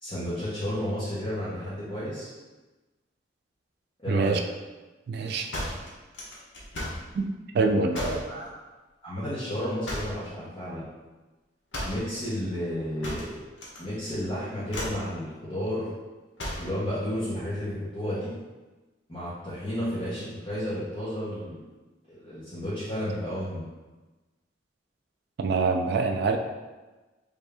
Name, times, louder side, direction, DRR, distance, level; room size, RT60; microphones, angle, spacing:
voice 1, 0.0-2.3 4.0-4.4 7.9-8.5 9.0-10.8 11.8-13.4 13.8-15.9 16.6-18.3 19.1-21.6 22.1-23.6, equal, 30° left, -12 dB, 1.0 m, -32 dB
voice 2, 4.1-4.4 5.1-5.5 7.1-7.3 7.5-8.2 25.4-26.4, right 4 dB, 60° right, 4 dB, 0.3 m, -25 dB
sound 1, 5.5-7.1 7.9-8.3 9.8-10.3 11.7-12.1 13.0-13.8 14.1-14.3 14.7-15.1 16.4-16.8, left 1 dB, 75° left, 0.9 m, -35 dB
3.4 x 2.6 x 3.4 m, 1.2 s
head